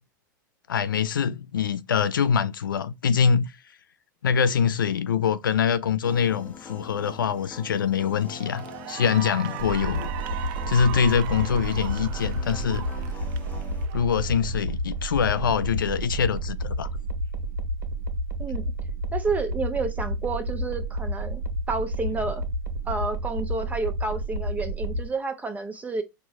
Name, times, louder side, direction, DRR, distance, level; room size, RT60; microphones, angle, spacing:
voice 1, 0.7-3.5 4.2-10.1 10.7-12.9 13.9-16.9, left 7 dB, 85° left, 0.4 m, -24 dB
sound 1, 6.0-13.9, left 4 dB, 15° left, 0.8 m, -43 dB
Cheering / Applause, 7.4-7.7 8.1-14.6, right 13 dB, 50° right, 0.4 m, -39 dB
sound 2, 9.6-25.1, right 1 dB, 70° right, 0.9 m, -30 dB
voice 2, 18.4-18.7 19.1-21.4 21.7-22.4 22.9-26.0, right 3 dB, 15° right, 0.9 m, -30 dB
4.5 x 2.3 x 4.3 m
hypercardioid pair, 95°, 11 cm